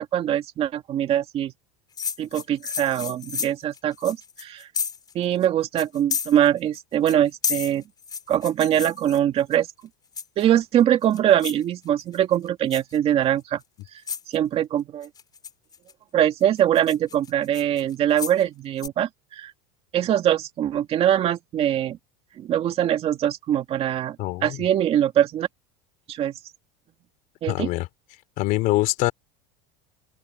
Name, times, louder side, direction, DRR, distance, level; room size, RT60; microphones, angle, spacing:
voice 1, 0.0-1.5 2.2-4.7 5.1-7.8 8.3-9.7 10.4-13.6 14.3-15.1 16.1-19.5 19.9-22.0 22.4-24.2 24.4-25.5 26.1-26.3 27.4-27.7, right 11 dB, 35° right, 2.1 m, -22 dB
sound 1, 2.0-5.1 5.4-5.5 5.8-6.8 7.1-9.6 10.2-10.6 11.0-11.6 12.0-12.4 12.7-13.0 13.6-13.7 14.1-14.4 15.0-15.9 16.4-18.4 18.8-18.9, left 6 dB, 20° left, 5.5 m, -31 dB
voice 2, 24.2-24.7 27.5-27.9 28.4-29.1, left 18 dB, 50° left, 3.1 m, -24 dB
supercardioid pair, 150°, 18 cm